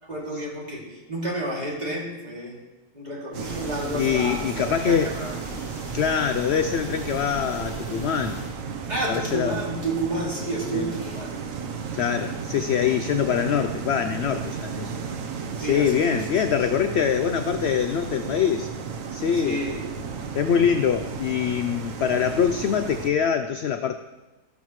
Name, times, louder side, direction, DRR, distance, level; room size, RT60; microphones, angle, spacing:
voice 1, 0.0-2.5 2.9-5.6 8.8-11.4 11.8-12.0 15.5-16.5 19.3-19.9, right 2 dB, 25° right, -4 dB, 2.9 m, -31 dB
sound 1, 3.3-8.5, right 2 dB, 20° left, 5.1 m, -37 dB
sound 2, 3.3-23.1, right 6 dB, 65° right, 1.2 m, -34 dB
voice 2, 3.9-5.2 5.9-8.4 9.1-9.6 10.7-10.9 11.9-14.9 15.6-18.7 19.1-19.7 20.3-23.9, left 8 dB, 70° left, 9 dB, 0.6 m, -24 dB
13.5 x 12.0 x 3.1 m, 1.1 s
omnidirectional pair, 1.6 m